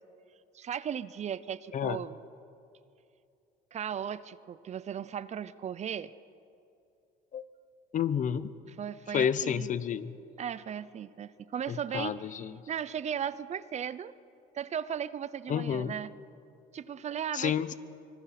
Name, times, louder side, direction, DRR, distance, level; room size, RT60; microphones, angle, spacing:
voice 1, 0.5-2.2 3.7-6.1 8.8-9.7 10.4-12.2 12.7-14.1 14.5-16.1 16.7-17.5, right 8 dB, 40° right, 17 dB, 0.6 m, -36 dB
voice 2, 7.9-8.5 9.1-10.1 11.7-12.6 15.5-15.9 17.3-17.7, left 8 dB, 50° left, 15 dB, 0.9 m, -30 dB
25.0 x 20.0 x 5.9 m, 2.6 s
cardioid pair, 110°, 17 cm